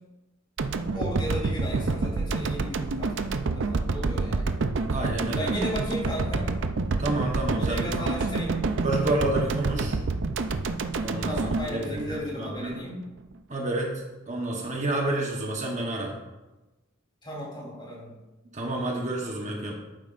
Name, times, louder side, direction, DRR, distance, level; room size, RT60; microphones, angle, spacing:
sound 1, 0.6-12.8, right 3 dB, 65° right, 0.5 m, -28 dB
voice 1, 0.9-4.5 5.4-6.5 7.6-8.7 11.2-13.0 17.2-18.2, equal, 25° left, -4 dB, 3.5 m, -35 dB
voice 2, 4.9-5.7 7.0-8.1 8.8-10.0 11.0-12.8 13.5-13.9 14.3-16.1 18.5-19.7, right 1 dB, 35° right, 0 dB, 1.1 m, -29 dB
11.0 x 9.2 x 2.5 m, 1.1 s
head